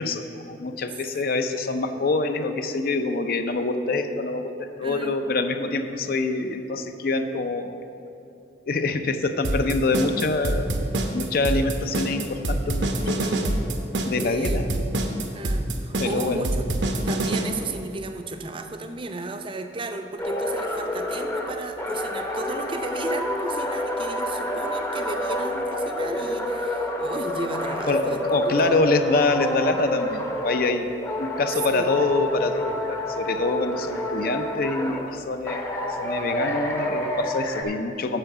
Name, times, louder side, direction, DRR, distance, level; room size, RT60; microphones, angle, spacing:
voice 1, 0.0-7.8 8.7-10.8 11.1-13.4 14.0-14.7 16.0-16.5 27.9-30.9 31.2-38.2, left 3 dB, 55° left, 8 dB, 0.5 m, -25 dB
voice 2, 4.8-5.2 13.0-13.8 14.2-14.7 15.3-16.7 17.1-29.0 31.7-31.9, right 2 dB, 30° right, 6 dB, 0.5 m, -35 dB
sound 1, 9.4-17.4, right 1 dB, 80° right, 0.8 m, -25 dB
sound 2, 20.2-30.7 31.0-35.0 35.5-37.6, left 1 dB, 15° left, 0.7 m, -28 dB
8.9 x 4.9 x 7.0 m, 2.8 s
head